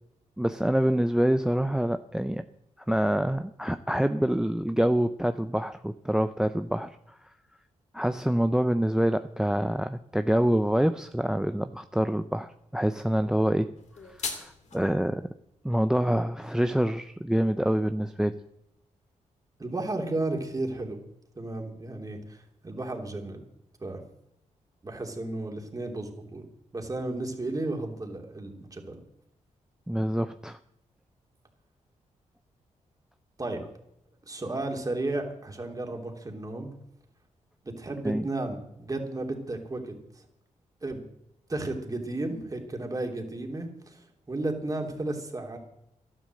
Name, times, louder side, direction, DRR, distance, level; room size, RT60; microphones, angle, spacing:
voice 1, 0.4-2.4 2.9-7.0 7.9-13.7 14.1-15.2 15.6-18.4 29.9-30.6 38.0-38.2, equal, 5° right, 11 dB, 0.6 m, -26 dB
sound 1, 13.8-14.8, left 4 dB, 65° left, 2.8 m, -37 dB
voice 2, 19.6-21.0 21.4-23.4 23.8-24.0 24.8-26.4 26.7-29.0 33.4-33.7 34.2-36.7 37.6-39.9 40.8-41.0 41.5-45.6, right 2 dB, 30° right, 2 dB, 3.1 m, -33 dB
12.5 x 11.5 x 7.7 m, 0.80 s
cardioid pair, 80°, 13 cm